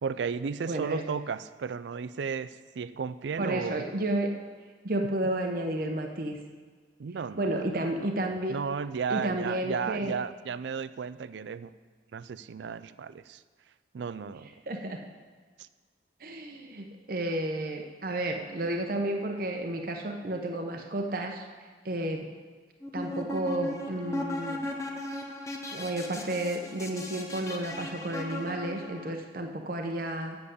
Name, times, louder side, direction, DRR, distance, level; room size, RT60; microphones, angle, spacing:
voice 1, 0.0-3.8 7.0-8.1 8.5-11.7 12.1-13.4 13.9-14.5 15.6-15.7, right 6 dB, 75° right, 15 dB, 0.4 m, -34 dB
voice 2, 0.7-1.0 3.4-4.3 4.8-6.4 7.4-8.6 9.1-10.2 14.7-15.0 16.2-21.4 21.8-22.3 22.9-24.6 25.7-30.4, right 1 dB, 50° right, 3 dB, 0.8 m, -32 dB
sound 1, 22.8-29.1, left 1 dB, 15° left, 0.7 m, -37 dB
7.8 x 6.9 x 8.1 m, 1.5 s
head